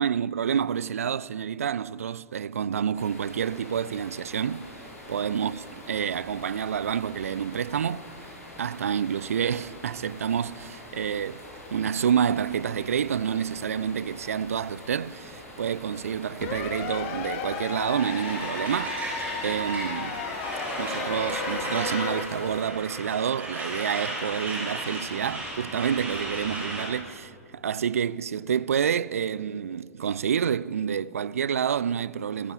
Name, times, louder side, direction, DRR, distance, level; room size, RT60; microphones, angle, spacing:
voice 1, 0.0-4.7 5.1-8.1 8.6-11.4 11.7-19.0 19.4-20.2 20.8-32.5, right 8 dB, 70° right, 0.4 m, -28 dB
sound 1, 2.9-22.6, left 1 dB, 70° left, 6.3 m, -45 dB
sound 2, 16.4-22.2, left 5 dB, 45° left, 2.5 m, -34 dB
Truck, 18.0-26.9, right 2 dB, 20° right, 6.3 m, -35 dB
26.5 x 15.0 x 7.1 m
figure-of-eight pair, 95°, 8 cm